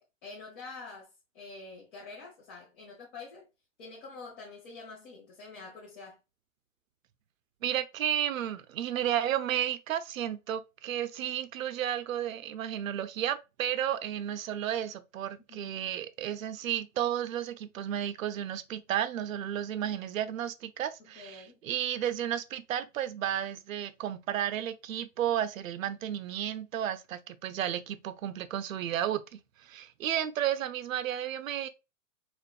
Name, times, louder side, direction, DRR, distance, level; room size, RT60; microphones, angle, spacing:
voice 1, 0.0-3.5 3.8-6.2 15.5-15.7 21.0-21.6, left 3 dB, 45° left, 1.3 m, -47 dB
voice 2, 7.6-31.7, right 10 dB, 80° right, 0.6 m, -33 dB
4.2 x 2.5 x 2.3 m
hypercardioid pair, 140°, 39 cm